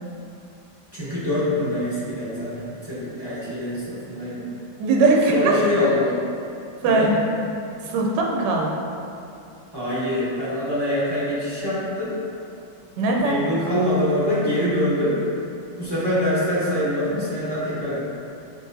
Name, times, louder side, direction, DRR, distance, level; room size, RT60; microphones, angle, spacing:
voice 1, 0.9-4.5 5.3-6.2 6.8-7.2 9.7-12.1 13.2-15.2 15.8-18.0, left 1 dB, 20° right, -11 dB, 0.7 m, -24 dB
voice 2, 4.8-5.5 6.8-7.1 7.9-8.8 13.0-13.3, right 3 dB, 80° right, -1 dB, 1.2 m, -20 dB
6.3 x 2.8 x 2.6 m, 2.6 s
omnidirectional pair, 1.9 m